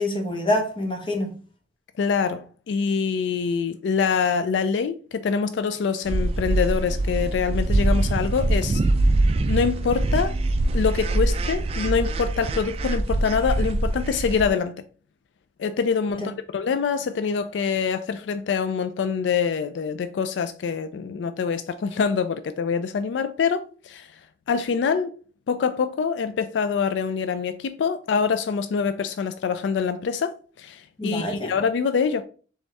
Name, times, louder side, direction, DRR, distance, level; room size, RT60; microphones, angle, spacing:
voice 1, 0.0-1.3 16.1-16.3 31.0-31.5, left 1 dB, 30° left, 0.9 m, -26 dB
voice 2, 2.0-8.8 9.5-10.4 10.7-14.7 15.6-24.1 24.5-25.1 25.5-32.2, left 6 dB, 90° left, 0.3 m, -25 dB
sound 1, 6.1-14.5, right 2 dB, 35° right, 0.3 m, -23 dB
4.0 x 3.5 x 3.3 m
head